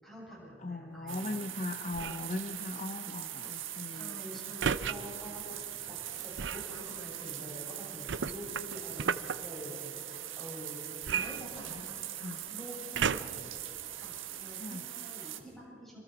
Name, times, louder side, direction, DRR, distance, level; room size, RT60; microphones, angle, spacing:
voice 1, 0.0-1.3 3.9-13.6 14.0-16.0, equal, ahead, -5 dB, 7.5 m, -47 dB
voice 2, 0.6-4.2 9.0-9.2 11.1-11.2 11.7-11.9 12.2-12.4 14.6-14.9, left 2 dB, 35° left, 8 dB, 0.7 m, -39 dB
sound 1, 1.1-15.4, right 12 dB, 80° right, 1.6 m, -42 dB
sound 2, 1.9-2.3 4.6-5.0 6.4-6.7 8.1-9.4 11.0-12.0 12.9-13.5 14.2-14.3, right 6 dB, 60° right, 0.5 m, -33 dB
26.5 x 26.5 x 4.8 m, 2.5 s
head